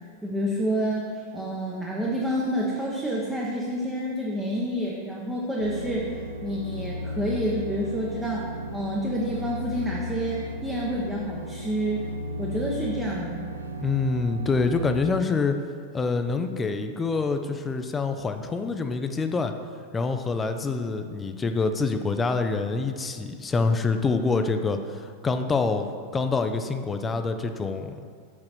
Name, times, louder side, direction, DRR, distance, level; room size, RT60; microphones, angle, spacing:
voice 1, 0.2-6.1 6.4-8.5 8.7-12.1 12.4-13.5, equal, 10° right, -4 dB, 0.8 m, -28 dB
sound 1, 5.6-15.0, left 1 dB, 80° right, 0.5 m, -35 dB
voice 2, 13.8-15.6 15.9-19.5 19.9-28.0, left 4 dB, 15° left, 7 dB, 0.4 m, -26 dB
6.3 x 4.3 x 4.3 m, 2.1 s
figure-of-eight pair, 90°, 0 cm